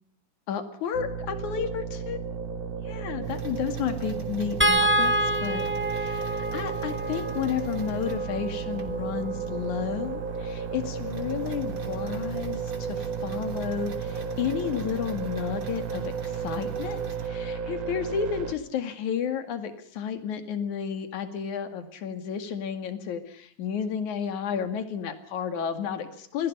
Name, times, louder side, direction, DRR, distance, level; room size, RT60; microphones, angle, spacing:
voice 1, 0.5-2.2 2.8-5.1 5.4-26.5, left 8 dB, 70° left, 8 dB, 3.5 m, -32 dB
sound 1, 0.9-18.6, right 6 dB, 80° right, 3.7 m, -34 dB
sound 2, 3.2-8.9 9.5-9.6 10.0-10.1 10.4-17.3, right 11 dB, 30° right, 3.9 m, -41 dB
sound 3, 4.6-10.9 12.4-12.6 13.0-13.1, right 1 dB, 15° right, 0.4 m, -29 dB
28.5 x 23.5 x 5.5 m, 0.64 s
omnidirectional pair, 3.6 m